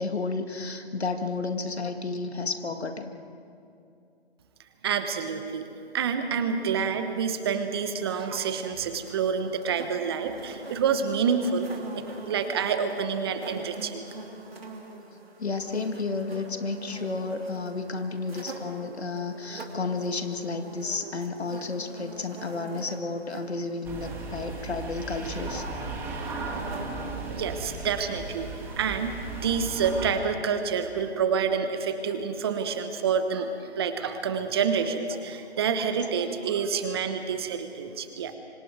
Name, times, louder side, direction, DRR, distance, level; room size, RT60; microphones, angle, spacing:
voice 1, 0.0-3.1 15.4-25.7, left 3 dB, 75° left, 6 dB, 2.2 m, -32 dB
voice 2, 4.8-5.7 5.9-11.7 11.9-14.0 27.3-38.4, right 6 dB, 25° right, 8 dB, 1.0 m, -28 dB
sound 1, 7.7-27.2, right 2 dB, 65° right, 3.3 m, -45 dB
sound 2, 23.8-30.1, right 3 dB, 5° right, 1.7 m, -36 dB
27.5 x 25.5 x 4.8 m, 2.5 s
figure-of-eight pair, 150°, 32 cm